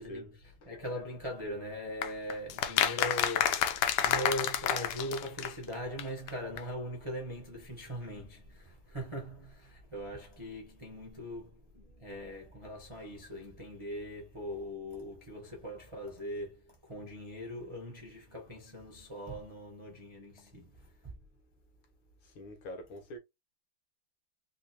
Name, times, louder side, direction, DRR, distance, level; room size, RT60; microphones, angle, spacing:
voice 1, 0.0-21.1, equal, 30° right, 0.5 m, -41 dB
sound 1, 2.0-5.7 6.0-6.1 6.3-6.4 6.6-6.7, left 10 dB, 90° left, 1.6 m, -29 dB
voice 2, 22.2-23.2, left 1 dB, 70° left, 1.7 m, -45 dB
3.8 x 2.8 x 2.8 m
omnidirectional pair, 2.4 m